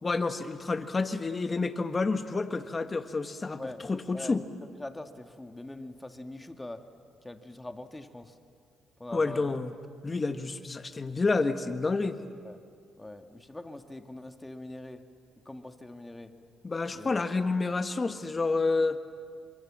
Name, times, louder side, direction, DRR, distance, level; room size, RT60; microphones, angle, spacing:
voice 1, 0.0-4.4 9.1-9.7 10.0-12.2 16.6-19.0, left 3 dB, 30° left, 8 dB, 1.5 m, -29 dB
voice 2, 4.1-6.8 7.2-8.3 9.0-9.6 12.4-12.6 13.0-15.0 15.4-16.3 16.9-17.2, left 1 dB, 15° left, 6 dB, 1.8 m, -43 dB
29.5 x 25.5 x 7.5 m, 2.2 s
cardioid pair, 90°, 0 cm